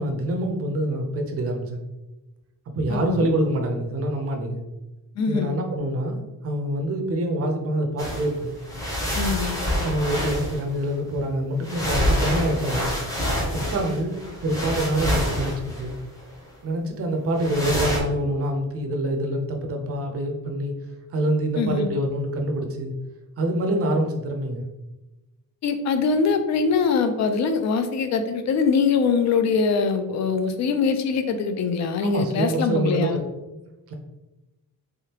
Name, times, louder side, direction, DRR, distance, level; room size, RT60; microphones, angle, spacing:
voice 1, 0.0-1.8 2.8-4.6 5.3-8.5 9.8-12.9 13.5-14.2 14.4-15.9 16.6-20.8 21.1-22.9 23.4-24.6 32.0-33.2 33.5-33.9, right 1 dB, 40° right, 4 dB, 0.6 m, -26 dB
voice 2, 2.9-3.3 5.2-5.5 9.1-9.6 21.6-21.9 25.6-33.2, left 5 dB, 50° left, 8 dB, 0.4 m, -23 dB
sound 1, 8.0-8.3 8.6-10.9 11.6-16.2 17.4-18.0, left 1 dB, 10° left, 0.7 m, -27 dB
3.6 x 3.4 x 2.8 m, 1.0 s
cardioid pair, 175°, 35 cm